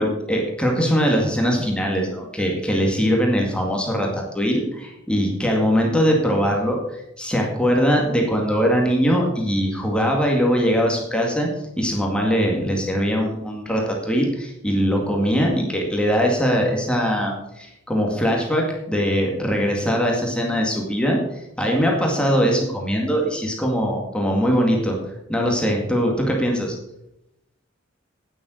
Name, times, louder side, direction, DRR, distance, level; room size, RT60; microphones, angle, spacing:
voice 1, 0.0-11.5 11.8-21.2 21.6-25.0 25.3-26.7, equal, 5° left, 0 dB, 2.1 m, -21 dB
9.5 x 8.3 x 6.4 m, 0.85 s
head